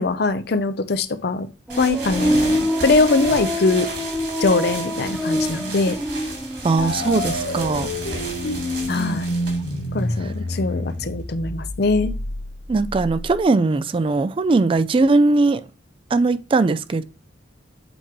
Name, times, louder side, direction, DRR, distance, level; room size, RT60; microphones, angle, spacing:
voice 1, 0.0-1.5 1.8-3.9 4.4-6.0 8.9-9.4 9.9-12.1, left 3 dB, 55° left, 0.6 m, -22 dB
sound 1, 1.7-8.5 8.8-9.6, equal, 5° right, 1.2 m, -26 dB
sound 2, 1.7-11.3, right 3 dB, 65° right, 3.1 m, -34 dB
voice 2, 6.6-7.9 9.6-9.7 12.7-15.6 16.1-17.0, right 3 dB, 30° right, 0.3 m, -19 dB
sound 3, 6.8-13.4, left 1 dB, 75° left, 1.1 m, -28 dB
7.9 x 3.0 x 4.6 m
head